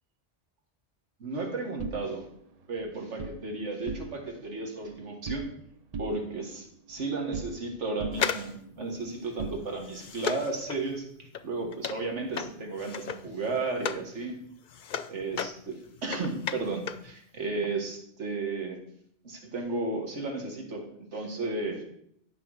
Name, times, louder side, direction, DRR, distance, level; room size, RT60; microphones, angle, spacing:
voice 1, 1.2-2.3 2.7-5.5 6.0-14.4 15.1-18.8 19.2-21.8, right 3 dB, 85° right, 2 dB, 1.9 m, -34 dB
sound 1, 1.8-3.4 3.8-4.4 4.7-5.6 5.9-7.7 8.0-10.1, right 4 dB, 45° right, 0.6 m, -41 dB
sound 2, 8.1-14.1 14.4-17.1 17.4-17.5, left 7 dB, 50° left, 0.6 m, -35 dB
11.0 x 6.0 x 4.7 m, 0.69 s
omnidirectional pair, 1.2 m